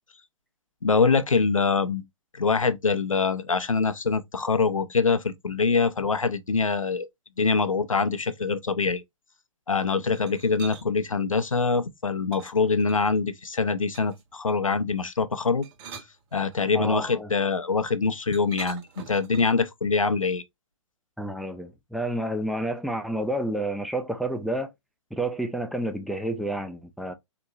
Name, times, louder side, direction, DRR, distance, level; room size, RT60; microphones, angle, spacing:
voice 1, 0.8-2.0 2.3-7.1 7.4-9.0 9.7-15.7 16.3-20.4, left 4 dB, 80° left, 0.6 m, -24 dB
sound 1, 10.1-10.9 12.3-13.2 13.9-14.3 15.5-16.8 18.3-19.7, right 6 dB, 25° right, 1.2 m, -45 dB
voice 2, 16.7-17.3 21.2-24.7 25.1-27.1, right 1 dB, ahead, 0.3 m, -30 dB
4.3 x 3.0 x 2.4 m
figure-of-eight pair, 115°, 17 cm